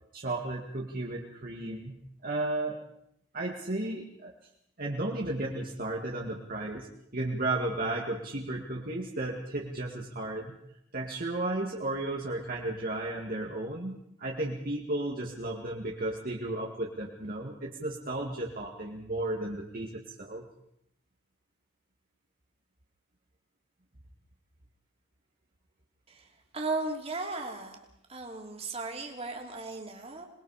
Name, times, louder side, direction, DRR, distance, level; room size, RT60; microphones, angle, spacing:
voice 1, 0.1-2.0 2.2-2.8 3.3-4.3 4.8-6.9 7.1-10.6 10.9-20.4, right 2 dB, 45° right, -2 dB, 2.1 m, -34 dB
voice 2, 26.5-27.8 28.1-30.3, right 3 dB, 30° right, 1 dB, 3.2 m, -36 dB
27.5 x 20.5 x 5.0 m, 0.75 s
head